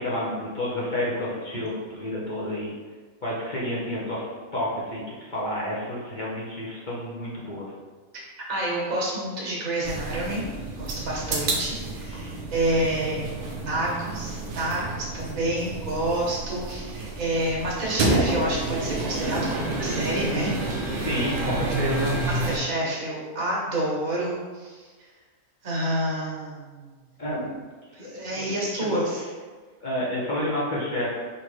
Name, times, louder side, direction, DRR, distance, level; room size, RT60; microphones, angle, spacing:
voice 1, 0.0-2.7 3.2-4.2 4.5-7.7 21.0-22.2 27.2-27.5 28.0-28.5 28.7-29.2 29.8-31.2, left 1 dB, 40° left, -7 dB, 0.8 m, -30 dB
voice 2, 8.5-10.4 10.8-20.5 21.1-21.3 22.3-24.9 25.6-26.9 27.9-29.0, right 1 dB, 75° right, -4 dB, 1.6 m, -28 dB
sound 1, 9.8-22.6, right 2 dB, 55° right, 0.6 m, -29 dB
5.5 x 2.8 x 3.1 m, 1.4 s
omnidirectional pair, 1.5 m